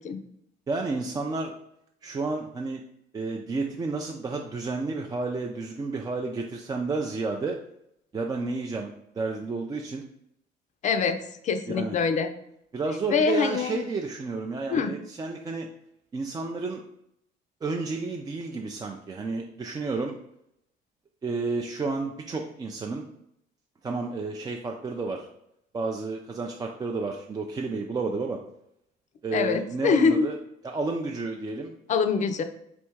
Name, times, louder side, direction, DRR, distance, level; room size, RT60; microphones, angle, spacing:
voice 1, 0.7-1.5 2.0-2.8 3.1-7.6 8.1-10.0 11.7-12.0 12.7-15.7 16.1-16.8 17.6-20.2 21.2-23.0 23.8-25.3 25.7-28.4 29.2-30.3 30.6-31.7, right 3 dB, 20° right, 1 dB, 0.4 m, -31 dB
voice 2, 10.8-11.2 11.4-12.3 13.1-13.8 14.7-14.9 29.3-30.3 31.9-32.4, left 5 dB, 45° left, 8 dB, 0.4 m, -24 dB
3.4 x 2.6 x 4.5 m, 0.77 s
cardioid pair, 110°, 17 cm